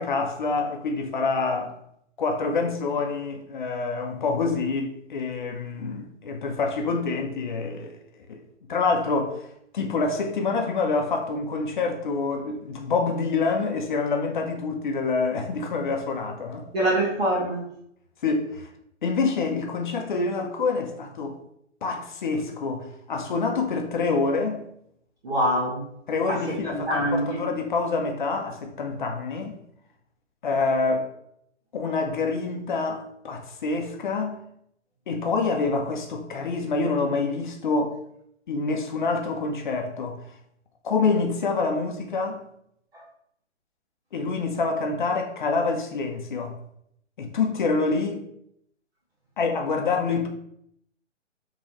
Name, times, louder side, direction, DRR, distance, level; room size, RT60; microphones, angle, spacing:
voice 1, 0.0-1.7 2.2-8.0 8.3-8.4 8.7-9.5 9.7-16.7 18.2-18.7 19.0-21.4 21.8-24.6 26.1-29.6 30.4-31.1 31.7-34.4 35.1-38.0 38.5-40.2 40.8-42.4 44.1-46.5 47.2-48.2 49.4-50.3, left 4 dB, 40° left, 0.7 m, -26 dB
voice 2, 16.7-17.7 25.2-25.8 26.3-27.5 42.9-43.0, right 1 dB, 55° right, 1.6 m, -25 dB
5.0 x 3.1 x 3.0 m
figure-of-eight pair, 135°, 37 cm